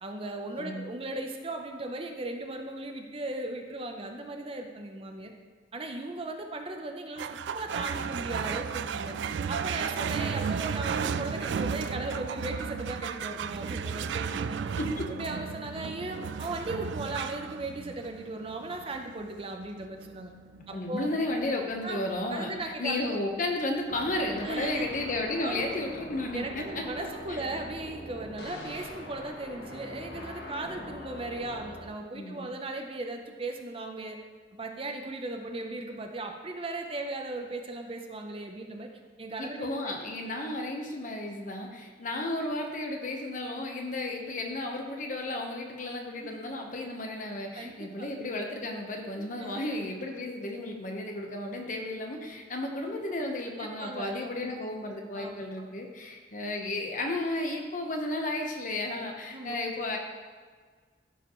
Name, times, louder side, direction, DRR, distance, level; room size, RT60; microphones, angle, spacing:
voice 1, 0.0-5.3 5.7-9.2 9.5-14.7 15.2-20.3 20.7-21.1 21.8-22.0 22.3-23.0 24.4-24.9 25.4-25.8 26.3-34.2 34.5-38.9 39.2-39.6 46.1-46.4 47.5-48.1 49.2-49.7 53.6-54.5 55.1-55.7 59.3-59.6, right 2 dB, 30° right, 3 dB, 0.7 m, -37 dB
sound 1, 7.2-23.9, right 6 dB, 85° right, 0.3 m, -35 dB
voice 2, 14.8-15.1 20.7-26.8 27.3-27.4 32.1-32.5 39.4-60.0, left 2 dB, 45° left, 2 dB, 1.0 m, -33 dB
sound 2, 23.9-31.9, left 1 dB, 70° left, 1.3 m, -43 dB
14.0 x 4.9 x 3.1 m, 1.5 s
head